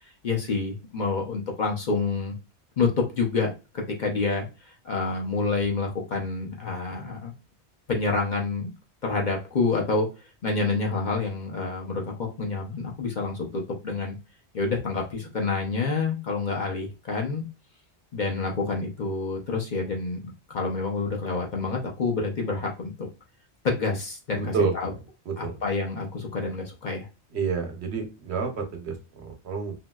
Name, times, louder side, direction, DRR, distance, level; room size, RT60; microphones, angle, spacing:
voice 1, 0.2-2.3 2.8-7.3 7.9-8.7 9.0-10.1 10.4-14.2 14.5-17.4 18.1-23.1 23.6-24.9 25.4-27.1, left 4 dB, 50° left, 0 dB, 0.8 m, -28 dB
voice 2, 24.4-24.9 25.3-25.6 27.3-29.7, right 5 dB, 70° right, 4 dB, 1.0 m, -29 dB
3.0 x 2.8 x 2.2 m, 0.29 s
omnidirectional pair, 1.1 m